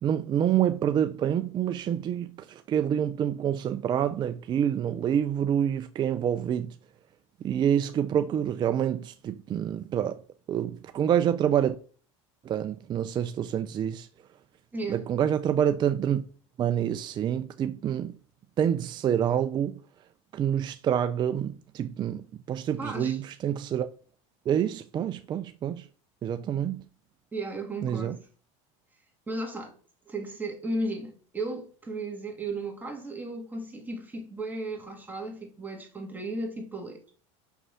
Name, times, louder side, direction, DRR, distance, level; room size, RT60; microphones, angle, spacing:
voice 1, 0.0-6.7 7.4-10.2 10.5-11.8 12.4-14.1 14.9-16.2 16.6-18.1 18.6-19.8 20.3-23.9 24.5-25.9 26.2-26.8 27.8-28.2, right 9 dB, 30° right, 0.4 m, -27 dB
voice 2, 14.7-15.1 22.8-23.2 27.3-28.3 29.3-29.7 30.1-37.0, right 2 dB, 10° right, 1.9 m, -35 dB
5.9 x 5.4 x 5.6 m
supercardioid pair, 125°, 16 cm